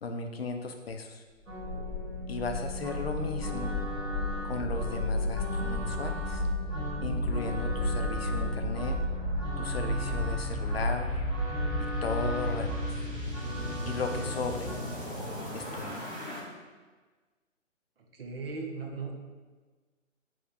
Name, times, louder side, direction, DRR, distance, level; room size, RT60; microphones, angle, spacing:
voice 1, 0.0-1.2 2.3-3.8 4.4-6.4 7.0-9.0 9.6-11.3 11.8-13.1 13.9-14.7 15.5-16.0, left 4 dB, 50° left, 5 dB, 0.4 m, -36 dB
sound 1, 1.4-16.4, left 1 dB, 10° right, 0.5 m, -33 dB
sound 2, 1.5-14.9, left 1 dB, 80° right, 1.3 m, -39 dB
voice 2, 18.1-19.1, right 4 dB, 45° right, 1 dB, 0.7 m, -37 dB
4.9 x 3.5 x 2.6 m, 1.4 s
figure-of-eight pair, 135°, 39 cm